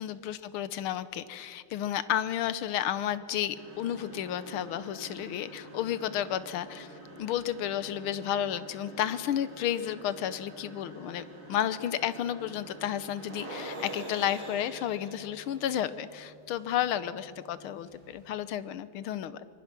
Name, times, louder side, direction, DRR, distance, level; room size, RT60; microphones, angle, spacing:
voice 1, 0.0-6.9 7.2-11.2 11.5-19.5, left 11 dB, 90° left, 15 dB, 1.7 m, -32 dB
sound 1, 3.5-18.4, right 1 dB, 75° right, 6.6 m, -47 dB
25.0 x 22.0 x 6.0 m, 2.4 s
omnidirectional pair, 2.3 m